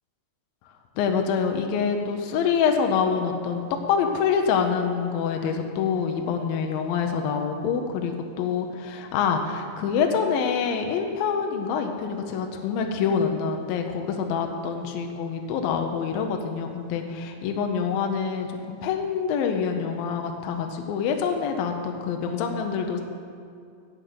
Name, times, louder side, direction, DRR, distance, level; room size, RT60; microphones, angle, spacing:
voice 1, 1.0-23.0, left 6 dB, 75° left, 4 dB, 2.4 m, -26 dB
10.0 x 8.0 x 7.7 m, 2.4 s
omnidirectional pair, 4.5 m